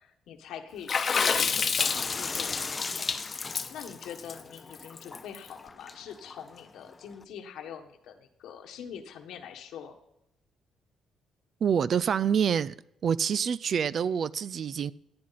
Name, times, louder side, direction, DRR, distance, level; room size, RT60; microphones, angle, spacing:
voice 1, 0.0-3.0 3.7-10.0, left 8 dB, 85° left, 1.5 m, -44 dB
Water / Splash splatter, 0.9-5.4, left 5 dB, 45° left, 0.9 m, -28 dB
sound 1, 1.8-7.2, left 4 dB, 30° left, 0.5 m, -40 dB
voice 2, 11.6-12.7 13.0-14.9, right 7 dB, 55° right, 0.4 m, -26 dB
17.0 x 9.7 x 4.2 m
cardioid pair, 90°, 0 cm